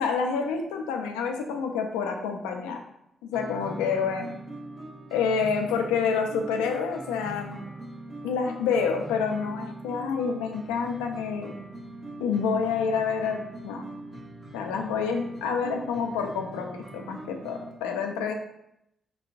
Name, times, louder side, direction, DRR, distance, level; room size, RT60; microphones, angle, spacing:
voice 1, 0.0-2.8 3.2-4.3 5.1-7.6 8.2-11.5 12.2-13.8 14.5-18.3, left 5 dB, 85° left, 4 dB, 0.3 m, -28 dB
sound 1, 3.3-17.7, right 2 dB, 40° right, 1.2 m, -42 dB
4.0 x 2.2 x 2.5 m, 0.79 s
hypercardioid pair, 40°, 0 cm